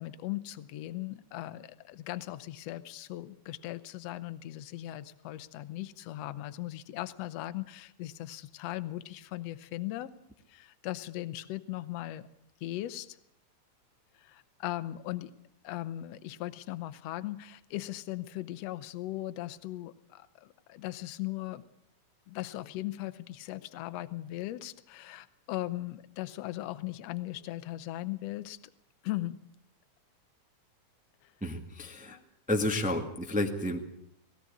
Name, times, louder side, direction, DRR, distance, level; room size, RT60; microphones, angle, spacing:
voice 1, 0.0-10.1 10.5-12.3 12.6-13.2 14.1-15.3 15.6-21.6 22.3-28.6 29.0-29.4 32.1-32.3, left 15 dB, 70° left, 12 dB, 1.8 m, -38 dB
voice 2, 31.4-32.2 32.5-33.8, left 1 dB, 5° right, 4 dB, 0.9 m, -31 dB
19.5 x 17.0 x 8.5 m, 0.76 s
omnidirectional pair, 3.4 m